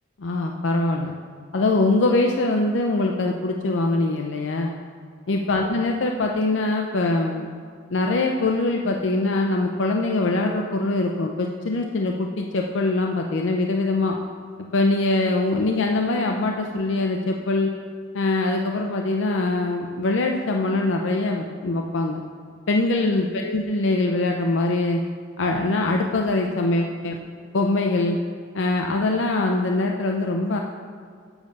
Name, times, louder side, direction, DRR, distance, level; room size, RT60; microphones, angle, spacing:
voice 1, 0.2-1.1 1.5-4.7 5.3-7.5 7.9-14.2 14.7-17.7 18.1-22.2 22.7-25.0 25.4-27.2 27.5-28.2 28.5-30.6, left 2 dB, 75° left, 2 dB, 0.5 m, -23 dB
7.2 x 6.9 x 5.2 m, 2.2 s
head